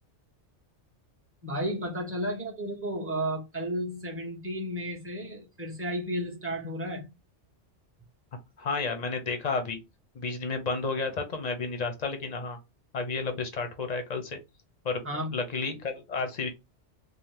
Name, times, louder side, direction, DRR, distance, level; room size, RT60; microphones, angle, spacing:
voice 1, 1.4-7.1 15.0-15.4, equal, 15° right, 0.6 m, -33 dB
voice 2, 8.6-9.8 10.1-12.6 12.9-14.4 14.8-15.0 15.3-16.5, left 4 dB, 50° left, 0.5 m, -31 dB
2.7 x 2.0 x 3.1 m
omnidirectional pair, 1.2 m